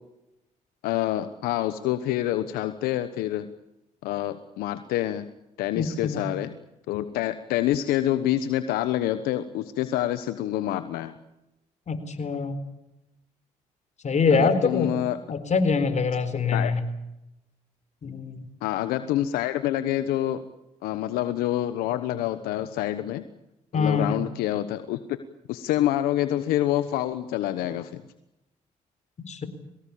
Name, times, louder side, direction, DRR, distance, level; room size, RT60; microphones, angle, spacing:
voice 1, 0.8-3.5 4.0-5.3 5.6-6.5 6.9-11.1 14.3-15.2 16.5-16.7 18.6-20.4 20.8-23.3 23.7-25.0 25.5-28.0, left 13 dB, 90° left, 11 dB, 1.2 m, -27 dB
voice 2, 5.7-6.2 11.9-12.6 14.0-14.9 15.3-16.8 18.0-18.5 23.7-24.1 29.3-29.5, left 4 dB, 50° left, 11 dB, 4.2 m, -24 dB
23.5 x 18.5 x 8.7 m, 0.89 s
supercardioid pair, 60°, 15 cm